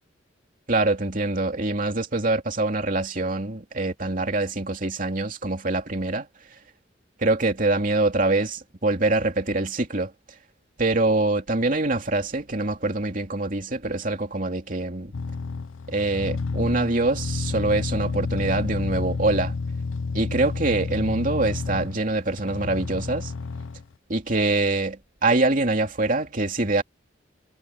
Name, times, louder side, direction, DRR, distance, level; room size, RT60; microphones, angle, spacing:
voice 1, 0.7-6.3 7.2-10.1 10.8-15.1 15.9-19.5 20.1-23.3 24.1-26.8, right 2 dB, 45° right, 2.8 m, -24 dB
sound 1, 15.1-23.8, left 4 dB, 85° left, 0.6 m, -30 dB
head